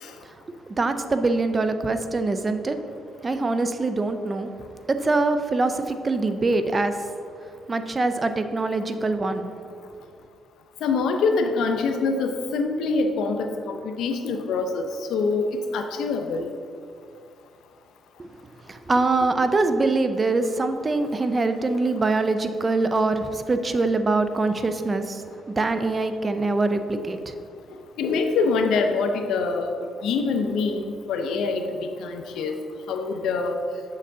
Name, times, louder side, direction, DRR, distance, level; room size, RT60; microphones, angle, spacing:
voice 1, 0.2-2.8 3.2-4.5 4.9-7.1 7.7-9.5 18.2-18.3 18.7-25.2 25.6-27.3, right 3 dB, 30° right, 9 dB, 0.4 m, -24 dB
voice 2, 10.8-16.5 28.0-29.8 30.0-32.6 32.9-33.6, left 4 dB, 80° left, 5 dB, 0.6 m, -25 dB
7.3 x 6.6 x 2.7 m, 2.4 s
cardioid pair, 90°, 0 cm